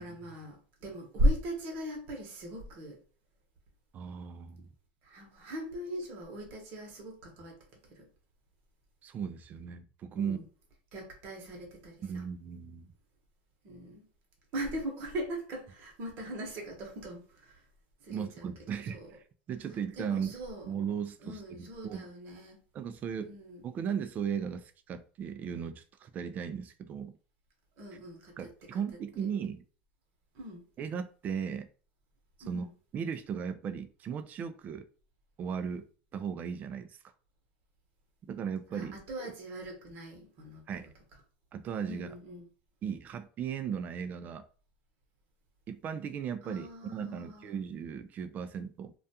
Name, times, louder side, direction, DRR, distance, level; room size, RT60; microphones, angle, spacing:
voice 1, 0.0-3.0 5.0-7.6 7.9-8.1 10.1-10.4 10.9-12.2 13.6-14.1 14.5-17.6 18.0-18.5 18.9-19.1 20.0-20.7 21.2-22.6 23.2-23.6 27.8-28.8 29.2-29.3 30.3-30.6 32.4-32.7 38.7-40.6 41.9-42.5 46.4-47.5, equal, 50° right, 0.9 m, -38 dB
voice 2, 3.9-4.7 9.0-10.4 12.0-12.9 18.1-19.0 19.5-20.4 20.7-22.1 22.7-23.4 23.6-27.2 28.4-29.6 30.8-31.7 32.5-32.7 32.9-34.9 35.4-35.9 36.1-37.0 38.3-38.9 39.2-39.3 40.7-40.9 41.5-42.1 42.8-44.5 45.7-48.9, right 7 dB, 35° right, 0.3 m, -37 dB
2.4 x 2.2 x 2.7 m
supercardioid pair, 115°, 5 cm